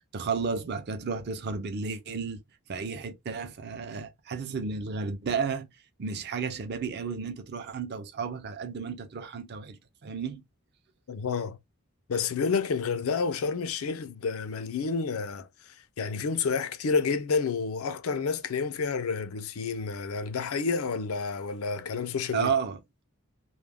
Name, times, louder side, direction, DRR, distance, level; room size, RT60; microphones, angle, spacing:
voice 1, 0.1-2.4 2.7-5.7 6.0-10.4 22.3-22.8, right 5 dB, 50° right, 0.5 m, -32 dB
voice 2, 11.1-11.6 12.1-15.5 16.0-22.5, left 5 dB, 70° left, 0.4 m, -29 dB
2.3 x 2.1 x 3.3 m
head